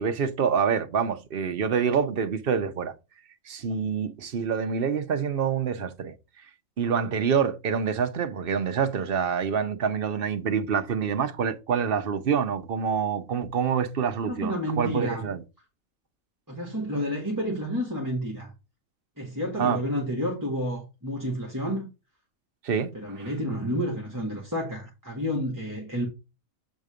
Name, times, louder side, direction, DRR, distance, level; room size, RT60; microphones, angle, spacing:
voice 1, 0.0-2.9 3.5-6.1 6.8-15.4 19.6-19.8 22.6-23.3, right 7 dB, 50° right, 0.9 m, -26 dB
voice 2, 14.3-15.3 16.5-18.5 19.2-21.9 22.9-26.1, equal, 15° right, 1.9 m, -30 dB
7.4 x 3.9 x 5.0 m
omnidirectional pair, 1.5 m